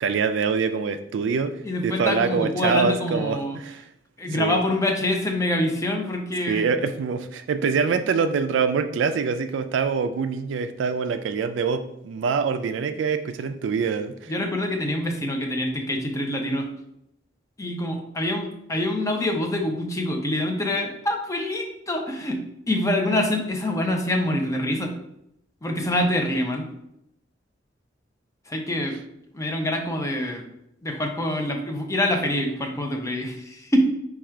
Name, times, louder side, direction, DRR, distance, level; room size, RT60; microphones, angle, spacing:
voice 1, 0.0-1.5 1.8-3.9 4.3-4.6 6.5-14.3, right 5 dB, 70° right, 9 dB, 0.3 m, -25 dB
voice 2, 1.6-3.6 4.2-6.7 14.3-16.7 17.6-22.4 22.7-24.9 25.6-26.7 28.5-29.0 29.3-30.4 30.8-33.8, left 1 dB, 15° left, 2 dB, 0.6 m, -25 dB
4.8 x 2.3 x 4.4 m, 0.78 s
head